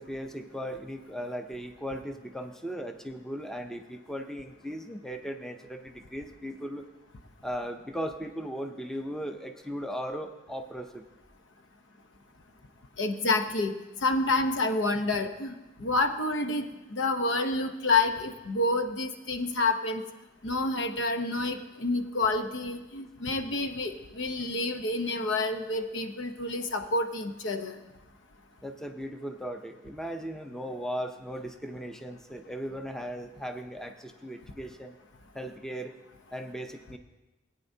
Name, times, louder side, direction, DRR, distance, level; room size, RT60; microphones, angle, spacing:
voice 1, 0.0-6.8 7.4-11.0 28.6-35.0 35.3-36.0 36.3-37.0, equal, 5° left, 6 dB, 0.5 m, -37 dB
voice 2, 13.0-13.8 14.0-20.0 20.4-27.8, left 2 dB, 90° left, 6 dB, 0.8 m, -28 dB
18.5 x 9.2 x 2.7 m, 1.1 s
head